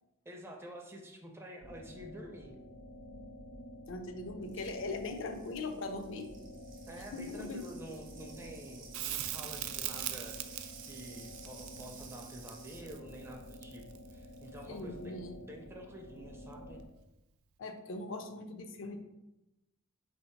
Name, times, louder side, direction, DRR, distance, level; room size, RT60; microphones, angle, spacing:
voice 1, 0.3-2.5 6.9-16.8, right 1 dB, 10° right, 1 dB, 0.4 m, -49 dB
sound 1, 1.6-16.8, left 1 dB, 85° left, 0.8 m, -50 dB
voice 2, 3.9-6.3 7.1-7.7 14.7-15.4 17.6-19.0, left 3 dB, 65° left, 6 dB, 0.4 m, -40 dB
sound 2, 4.4-12.8, right 5 dB, 60° right, 0.7 m, -55 dB
Crackle, 8.9-14.1 16.8-16.9, right 13 dB, 85° right, 0.3 m, -41 dB
3.6 x 2.7 x 4.5 m, 0.96 s
head